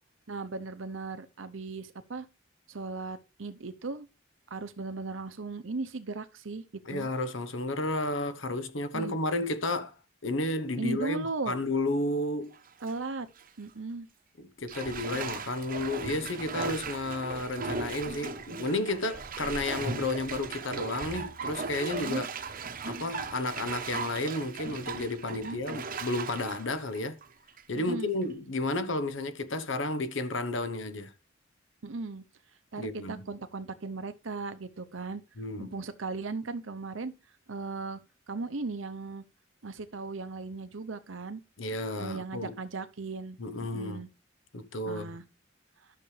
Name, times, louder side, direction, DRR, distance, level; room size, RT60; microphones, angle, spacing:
voice 1, 0.3-2.3 2.7-4.1 4.5-7.1 8.9-9.2 10.8-11.6 12.8-13.3 13.6-14.1 22.0-22.2 25.3-25.6 27.8-28.2 31.8-32.2 32.7-35.2 35.6-37.1 37.5-38.0 38.3-39.2 39.6-41.4 42.0-44.1 44.8-45.2, right 3 dB, 75° right, 0.8 m, -37 dB
voice 2, 6.9-9.9 10.2-12.6 14.6-22.3 22.8-27.2 27.7-31.1 32.8-33.2 35.4-35.7 41.6-42.5 43.4-44.0 44.5-45.1, left 2 dB, 70° left, 1.0 m, -32 dB
Bathtub (filling or washing), 12.5-12.9 13.4-13.5 14.7-27.8 28.2-28.3, right 4 dB, 45° right, 0.9 m, -38 dB
12.0 x 6.7 x 3.3 m
head